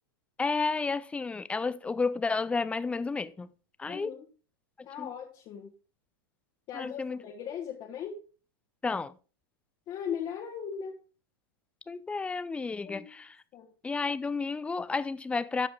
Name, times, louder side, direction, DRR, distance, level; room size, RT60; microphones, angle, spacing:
voice 1, 0.4-3.5 3.8-4.1 5.0-5.1 6.7-7.2 8.8-9.2 11.9-13.3 13.8-15.7, left 4 dB, 10° left, 0.5 m, -31 dB
voice 2, 3.9-4.2 4.8-5.7 6.7-8.2 9.9-11.0 12.8-13.1 13.5-13.7, left 8 dB, 40° left, 1.7 m, -38 dB
13.0 x 5.0 x 3.7 m
hypercardioid pair, 115°, 13 cm